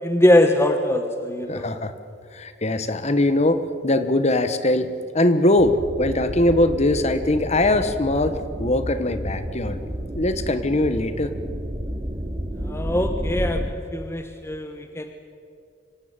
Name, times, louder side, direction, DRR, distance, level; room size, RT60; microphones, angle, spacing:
voice 1, 0.0-1.7 12.6-13.6 13.9-15.1, left 1 dB, 15° left, 6 dB, 1.2 m, -21 dB
voice 2, 1.5-1.9 2.3-9.8 10.1-11.3, left 1 dB, 35° left, 10 dB, 1.3 m, -21 dB
sound 1, 5.6-13.7, equal, 30° right, 2.8 m, -31 dB
25.5 x 17.0 x 9.1 m, 2.3 s
head